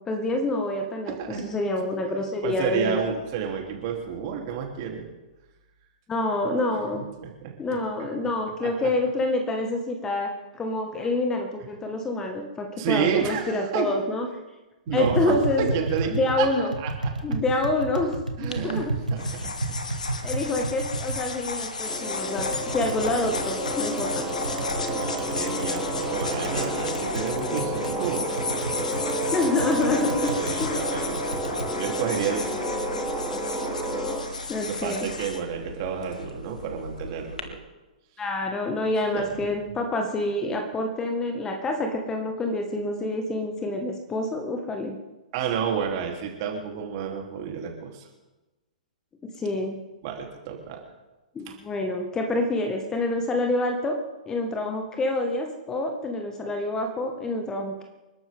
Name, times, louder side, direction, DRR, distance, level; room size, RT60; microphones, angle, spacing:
voice 1, 0.0-3.0 6.1-7.1 7.6-14.3 14.9-15.7 16.1-16.7 17.2-18.9 20.2-24.3 29.3-30.3 30.6-30.8 34.5-35.1 38.2-45.0 49.4-49.8 51.4-54.0 54.3-57.8, left 2 dB, 15° left, 3 dB, 1.7 m, -27 dB
voice 2, 1.0-1.5 2.4-5.1 6.9-7.8 8.6-8.9 12.8-14.0 14.9-17.1 18.4-18.9 19.1-19.8 20.5-20.7 24.9-28.6 29.6-31.4 31.7-32.6 33.4-33.6 34.3-37.6 39.1-39.3 45.3-48.1 50.0-50.8 51.5-51.6, right 7 dB, 35° right, 1 dB, 3.4 m, -31 dB
Tap, 14.9-31.7, right 2 dB, 80° right, 1.9 m, -33 dB
sound 1, 18.5-37.4, left 4 dB, 70° left, 1.8 m, -34 dB
sound 2, 21.9-34.2, right 1 dB, ahead, 4.4 m, -31 dB
29.0 x 12.5 x 3.8 m, 1.1 s
figure-of-eight pair, 115°, 4 cm